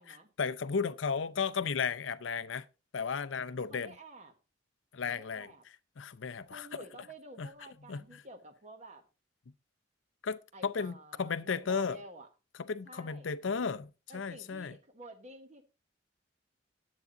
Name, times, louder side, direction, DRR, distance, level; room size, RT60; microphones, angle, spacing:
voice 1, 0.1-2.7 2.9-3.9 4.9-5.5 6.0-6.7 7.4-7.5 7.9-8.2 10.2-12.0 12.6-14.8, left 5 dB, 85° left, 0.6 m, -34 dB
voice 2, 3.7-4.3 5.1-5.6 6.4-9.0 10.5-12.3 12.8-13.3 14.1-15.6, right 1 dB, 40° right, 1.3 m, -51 dB
10.5 x 8.4 x 3.8 m
head